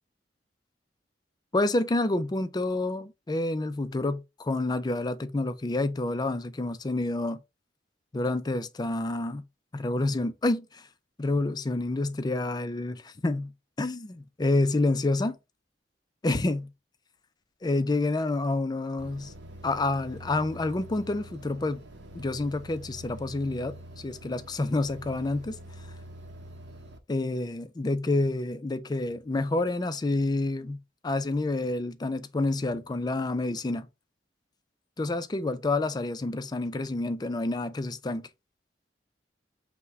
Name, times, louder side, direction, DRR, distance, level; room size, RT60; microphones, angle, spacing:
voice 1, 1.5-7.4 8.1-9.4 9.7-10.9 11.2-13.5 13.8-15.4 16.2-16.7 17.6-19.3 19.6-21.8 22.1-25.6 27.1-33.9 35.0-38.3, left 2 dB, 25° left, 0.4 m, -28 dB
sound 1, 19.0-27.0, right 1 dB, 65° right, 0.8 m, -46 dB
5.6 x 2.2 x 3.6 m
head